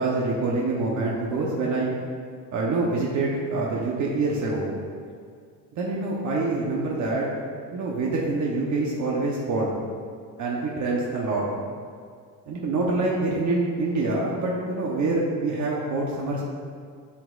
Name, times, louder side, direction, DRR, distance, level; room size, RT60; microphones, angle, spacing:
voice 1, 0.0-2.0 2.5-4.7 5.7-7.3 7.7-9.7 10.4-11.5 12.5-16.4, right 3 dB, 50° right, -3 dB, 1.0 m, -26 dB
11.5 x 5.1 x 2.5 m, 2.1 s
cardioid pair, 140°, 36 cm